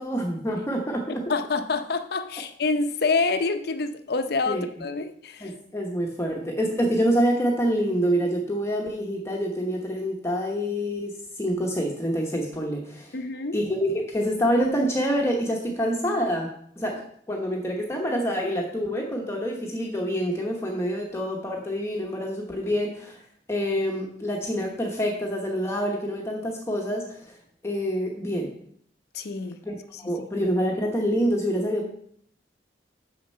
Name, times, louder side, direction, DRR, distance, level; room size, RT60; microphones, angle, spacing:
voice 1, 0.0-1.3 4.5-4.6 5.4-13.1 13.5-17.0 17.3-23.2 23.5-27.4 27.6-28.5 29.6-31.9, equal, 15° left, 0 dB, 1.0 m, -26 dB
voice 2, 1.3-5.5 13.1-13.6 29.1-29.6 29.9-30.2, left 3 dB, 60° left, 9 dB, 0.7 m, -27 dB
6.6 x 6.6 x 5.4 m, 0.65 s
head